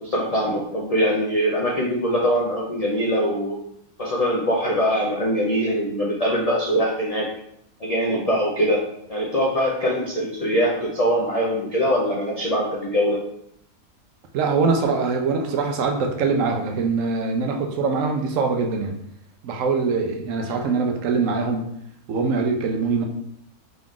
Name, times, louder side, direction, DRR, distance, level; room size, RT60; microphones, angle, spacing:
voice 1, 0.0-3.6 4.0-7.3 7.8-13.2, equal, 65° left, -3 dB, 0.3 m, -22 dB
voice 2, 14.3-18.9 19.4-21.6 22.1-23.0, right 4 dB, 70° right, 3 dB, 0.9 m, -23 dB
3.9 x 2.4 x 3.6 m, 0.74 s
omnidirectional pair, 1.5 m